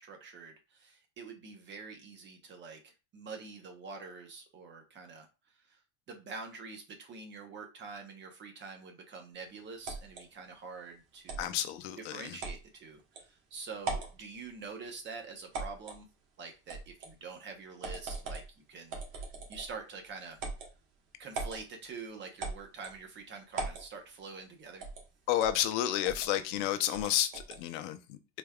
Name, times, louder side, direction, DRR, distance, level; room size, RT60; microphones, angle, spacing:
voice 1, 0.0-5.8 6.1-11.6 12.0-16.1 16.4-20.4 21.2-24.8, right 4 dB, 30° right, 1.0 m, -46 dB
sound 1, 9.8-10.2 11.3-11.5 12.4-12.6 13.2-13.3 13.8-14.2 15.5-16.0 16.7-17.1 17.8-18.5 18.9-19.8 20.4-20.7 21.3-21.6 22.4-23.0 23.5-23.9 24.8-25.1 25.4-25.6 26.0-26.3 26.9-27.6, right 3 dB, 60° right, 1.4 m, -39 dB
voice 2, 11.4-12.4 25.3-28.2, left 12 dB, 85° left, 0.7 m, -31 dB
4.0 x 3.4 x 2.3 m
cardioid pair, 140°, 34 cm